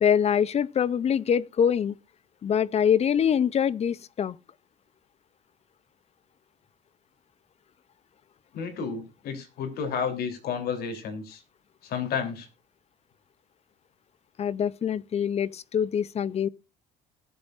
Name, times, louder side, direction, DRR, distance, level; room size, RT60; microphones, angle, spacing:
voice 1, 0.0-2.0 2.4-4.3 14.4-16.5, left 8 dB, 40° left, 0.6 m, -24 dB
voice 2, 8.5-11.4 11.8-12.5, left 6 dB, 70° left, 3.4 m, -31 dB
20.0 x 7.2 x 2.5 m
cardioid pair, 110°, 17 cm